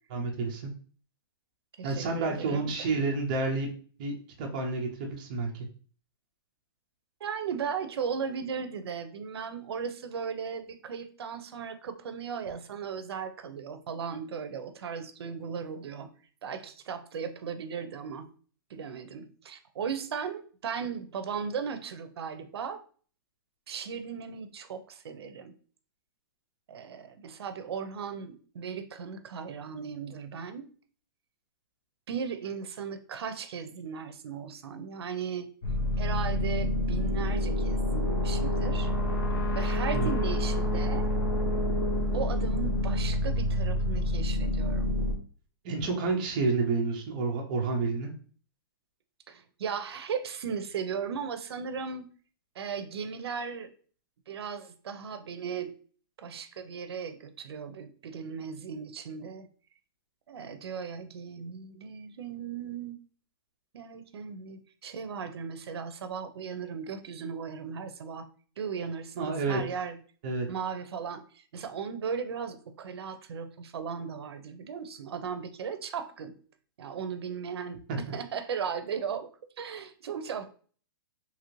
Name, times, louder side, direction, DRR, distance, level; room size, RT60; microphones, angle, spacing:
voice 1, 0.1-0.6 1.8-3.7 4.0-5.7 39.9-40.1 45.6-48.1 69.2-69.6 70.2-70.5 77.9-78.0, right 3 dB, 20° right, 1 dB, 0.3 m, -29 dB
voice 2, 1.8-2.7 7.2-16.1 16.4-18.3 18.7-22.8 23.7-25.5 26.7-30.7 32.1-35.5 36.0-38.9 39.5-41.1 42.1-44.9 49.3-52.1 52.6-53.7 54.3-55.7 56.2-59.5 60.3-63.0 63.7-68.3 68.6-70.0 70.5-76.4 76.8-77.8 78.1-79.3 79.6-80.5, right 6 dB, 85° right, 10 dB, 0.5 m, -37 dB
sound 1, 35.6-45.1, left 1 dB, 55° left, 0.8 m, -28 dB
2.9 x 2.5 x 3.0 m, 0.42 s
hypercardioid pair, 180°, 13 cm